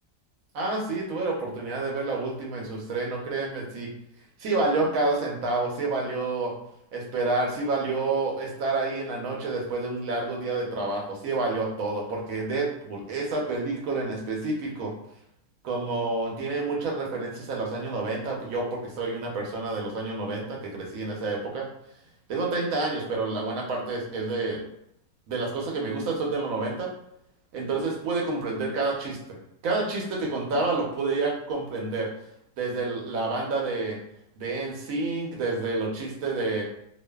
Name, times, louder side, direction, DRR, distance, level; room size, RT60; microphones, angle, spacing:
voice 1, 0.5-3.9 4.4-6.5 6.9-14.9 15.6-21.6 22.3-24.6 25.3-26.9 27.5-29.2 29.6-32.1 32.6-34.0 34.4-36.6, right 3 dB, 65° right, -1 dB, 0.9 m, -29 dB
2.5 x 2.5 x 2.2 m, 0.76 s
omnidirectional pair, 1.8 m